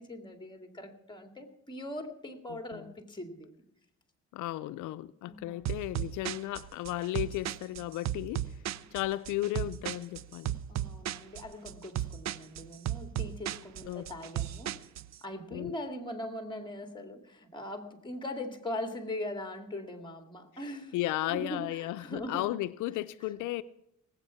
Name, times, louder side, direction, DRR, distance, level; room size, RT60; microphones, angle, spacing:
voice 1, 0.0-3.5 5.3-5.7 8.8-8.9 10.7-14.7 15.2-21.0 21.3-22.6, left 1 dB, 15° left, 2.3 m, -41 dB
voice 2, 2.5-2.8 4.3-8.4 8.9-10.6 13.9-14.0 15.5-15.8 20.9-23.6, left 16 dB, 90° left, 0.5 m, -34 dB
sound 1, 5.7-15.2, right 12 dB, 65° right, 0.6 m, -36 dB
19.0 x 8.2 x 5.8 m
cardioid pair, 90°, 30 cm